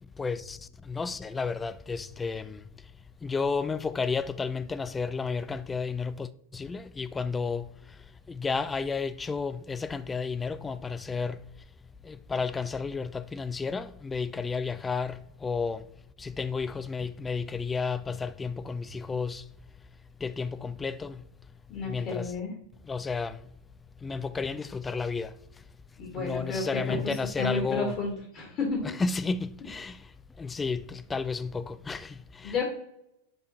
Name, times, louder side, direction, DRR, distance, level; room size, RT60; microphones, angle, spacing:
voice 1, 0.1-2.9 3.2-11.6 12.0-15.9 16.2-19.5 20.2-21.3 21.8-22.3 22.8-23.5 24.0-25.6 26.1-28.0 28.8-32.6, left 4 dB, 15° left, 0.4 m, -32 dB
voice 2, 21.7-22.5 26.0-27.0 27.4-28.8 32.4-32.6, left 4 dB, 35° left, 2.1 m, -31 dB
8.0 x 3.7 x 4.1 m
figure-of-eight pair, 90°, 0 cm